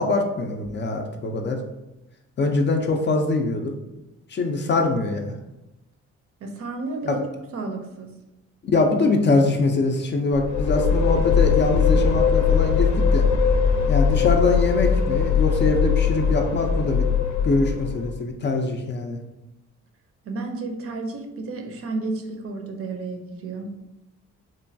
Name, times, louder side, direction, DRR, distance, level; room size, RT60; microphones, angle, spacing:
voice 1, 0.0-1.6 2.4-3.8 4.3-5.2 7.1-7.2 8.6-13.3 13.9-17.1 17.4-19.2, left 3 dB, 35° left, 3 dB, 0.4 m, -23 dB
voice 2, 6.4-7.2 7.5-8.1 20.2-23.7, right 3 dB, 50° right, 4 dB, 0.5 m, -32 dB
sound 1, 10.3-18.2, left 6 dB, 80° left, 0.6 m, -20 dB
3.0 x 2.2 x 2.6 m, 0.98 s
cardioid pair, 90°, 30 cm